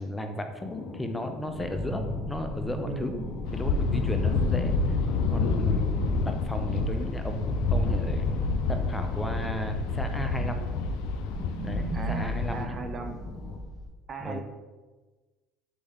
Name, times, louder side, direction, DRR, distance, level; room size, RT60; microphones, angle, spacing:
voice 1, 0.0-3.1 3.5-5.0 5.3-8.3 8.7-10.6 11.6-12.8 14.2-14.4, left 1 dB, 10° left, 6 dB, 0.5 m, -34 dB
sound 1, 0.6-13.6, left 2 dB, 50° left, 0.7 m, -43 dB
sound 2, 1.5-13.9, equal, 10° right, 1.1 m, -36 dB
voice 2, 2.9-3.3 11.9-13.2 14.1-14.4, right 4 dB, 35° right, 5 dB, 0.5 m, -38 dB
sound 3, 3.4-12.7, left 4 dB, 75° left, 0.3 m, -28 dB
4.2 x 3.4 x 3.5 m, 1.2 s
supercardioid pair, 80°, 0 cm